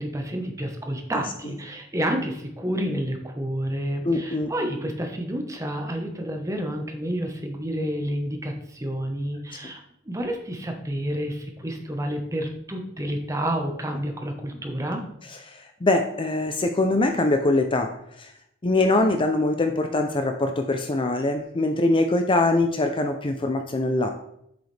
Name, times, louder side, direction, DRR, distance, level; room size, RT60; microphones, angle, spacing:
voice 1, 0.0-9.8 10.0-15.0, right 1 dB, 15° right, 3 dB, 1.1 m, -29 dB
voice 2, 4.0-4.5 15.5-18.3 18.6-24.1, left 2 dB, 25° left, 5 dB, 0.5 m, -23 dB
8.0 x 6.8 x 3.3 m, 0.74 s
head